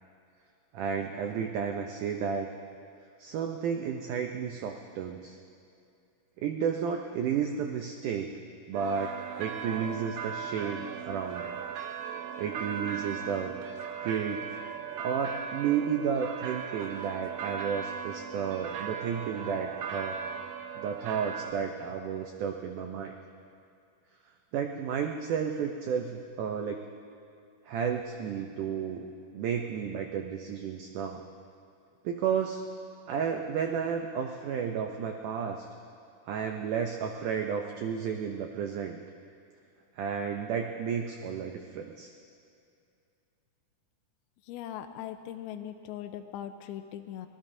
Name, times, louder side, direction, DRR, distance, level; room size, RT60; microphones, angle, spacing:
voice 1, 0.7-2.5 3.2-5.4 6.4-8.4 8.7-11.6 12.4-13.6 14.0-14.5 15.0-20.2 20.8-23.2 24.5-26.9 27.7-29.1 29.3-31.2 32.0-32.6 33.1-35.7 36.3-39.0 40.0-42.1, right 7 dB, 90° right, 3 dB, 1.8 m, -32 dB
sound 1, 8.7-21.5, right 6 dB, 75° right, 2.4 m, -38 dB
voice 2, 44.5-47.3, left 10 dB, 80° left, 7 dB, 2.4 m, -40 dB
25.0 x 18.5 x 2.7 m, 2.5 s
omnidirectional pair, 4.6 m